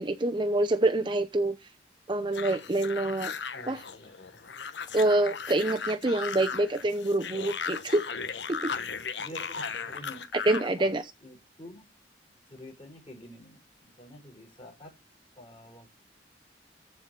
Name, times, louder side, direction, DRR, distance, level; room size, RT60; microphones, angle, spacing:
voice 1, 0.0-1.6 2.1-3.3 3.7-3.8 4.9-8.0 8.5-8.7 10.5-11.0, right 2 dB, 25° right, 0.8 m, -26 dB
sound 1, 2.3-10.7, left 6 dB, 75° left, 1.1 m, -37 dB
voice 2, 3.5-4.5 9.2-10.3 10.7-10.9 11.2-11.8 12.5-14.9 15.4-16.0, equal, 30° left, 6.3 m, -48 dB
15.0 x 5.0 x 5.9 m
head